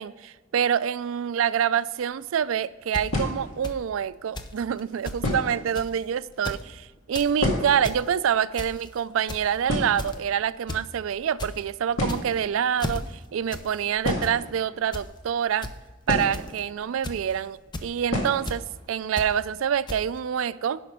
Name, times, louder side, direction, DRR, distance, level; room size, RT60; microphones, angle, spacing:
voice 1, 0.0-15.7 16.1-20.8, right 8 dB, 75° right, 17 dB, 0.3 m, -26 dB
sound 1, 2.2-2.3 3.1-3.7 4.6-4.7 5.2-5.7 6.0-6.1 6.3-6.5 6.9-8.0 8.3-8.4 8.6-8.9 9.2-9.3 9.7-10.6 11.5-11.6 11.9-12.5 14.0-15.1 16.0-16.9 17.1-17.2 18.1-18.5 18.9-19.0 19.3-19.4 19.8-20.2, left 1 dB, 75° left, 2.0 m, -29 dB
sound 2, 2.9-3.0 3.6-3.8 4.4-4.5 4.8-4.9 5.1-5.2 5.7-6.0 6.3-6.6 7.0-7.3 7.7-8.0 8.6-8.9 9.3-9.6 10.0-10.2 10.7-10.8 11.2-11.5 12.0-12.4 12.8-13.0 13.5-13.7 14.0-14.3 14.9-15.1 15.6-15.7 16.3-16.6 17.0-17.3 17.7-17.9 18.4-18.6 19.2-19.3 19.9-20.0, left 1 dB, 20° left, 0.6 m, -34 dB
10.5 x 5.7 x 5.0 m, 1.3 s
head